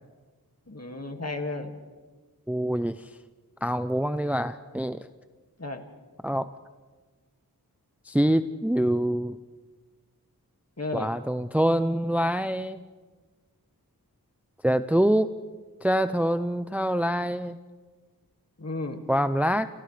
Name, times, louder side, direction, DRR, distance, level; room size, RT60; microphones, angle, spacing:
voice 1, 0.7-1.7 5.6-5.8 10.8-11.1 18.6-19.0, left 2 dB, 40° left, 4 dB, 2.2 m, -33 dB
voice 2, 2.5-3.1 3.6-5.0 6.2-6.5 8.1-9.4 10.9-12.8 14.6-15.3 15.8-17.6 19.1-19.7, equal, 5° right, 11 dB, 0.6 m, -25 dB
28.5 x 28.0 x 3.4 m, 1.4 s
wide cardioid pair, 45°, 37 cm